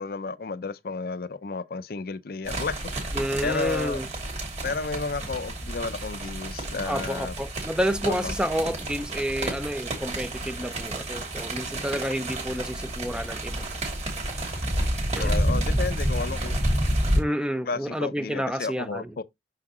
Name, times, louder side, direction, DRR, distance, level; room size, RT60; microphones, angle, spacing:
voice 1, 0.0-2.9 3.4-4.0 4.6-7.3 8.0-8.3 15.1-16.6 17.7-19.2, left 4 dB, 55° left, 0.5 m, -32 dB
sound 1, 2.5-17.2, right 1 dB, 40° right, 2.8 m, -29 dB
voice 2, 3.1-4.1 6.9-13.6 15.2-15.3 17.1-19.1, equal, 5° right, 0.5 m, -29 dB
6.4 x 5.8 x 2.9 m
head